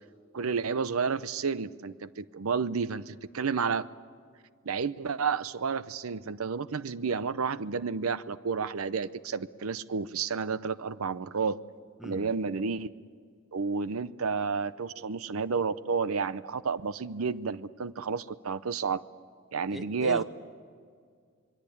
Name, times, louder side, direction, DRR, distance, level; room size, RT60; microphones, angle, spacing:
voice 1, 0.3-3.9 4.7-11.6 12.0-12.9 13.5-19.0 19.5-20.2, right 5 dB, 90° right, 15 dB, 0.7 m, -31 dB
voice 2, 12.0-12.3 19.7-20.2, right 1 dB, ahead, 7 dB, 1.2 m, -39 dB
27.0 x 22.0 x 8.6 m, 2.1 s
head